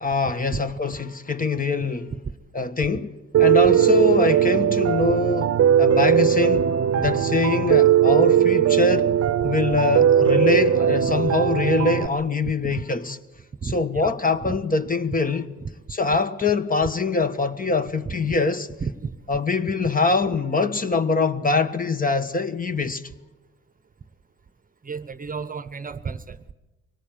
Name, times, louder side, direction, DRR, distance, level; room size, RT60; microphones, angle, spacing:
voice 1, 0.0-2.1 2.5-3.1 3.4-6.6 7.0-9.1 9.4-13.2 13.7-15.5 15.9-18.7 19.3-23.0, left 3 dB, 30° left, 1.4 m, -23 dB
voice 2, 1.8-2.2 2.9-3.0 5.0-5.1 6.5-6.6 7.0-7.1 9.4-9.5 12.6-12.8 13.6-14.1 14.4-14.6 18.1-18.2 18.8-19.1 24.8-26.4, right 5 dB, 30° right, 1.0 m, -32 dB
Piano, 3.3-12.1, right 9 dB, 55° right, 0.8 m, -19 dB
24.5 x 18.5 x 9.2 m
cardioid pair, 90°, 30 cm